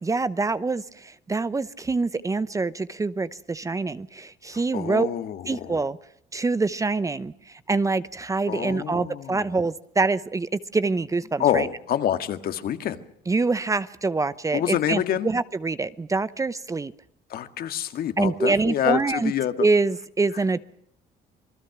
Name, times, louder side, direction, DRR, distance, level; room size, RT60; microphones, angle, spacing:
voice 1, 0.0-5.1 5.5-6.0 6.3-11.7 13.3-16.9 18.2-19.3 19.6-20.6, right 3 dB, 20° right, 15 dB, 0.8 m, -25 dB
voice 2, 4.5-5.8 8.5-9.5 11.4-13.0 14.5-15.3 17.3-19.7, left 10 dB, 60° left, 9 dB, 1.9 m, -27 dB
28.0 x 20.5 x 6.1 m, 0.71 s
cardioid pair, 110°, 17 cm